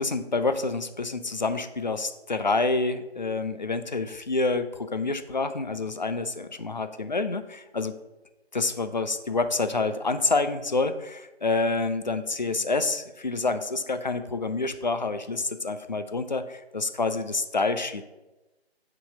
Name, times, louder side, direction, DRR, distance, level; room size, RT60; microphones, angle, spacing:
voice 1, 0.0-7.9 8.5-18.0, left 3 dB, 45° left, 10 dB, 0.4 m, -28 dB
6.0 x 3.8 x 4.9 m, 1.0 s
figure-of-eight pair, 160°, 32 cm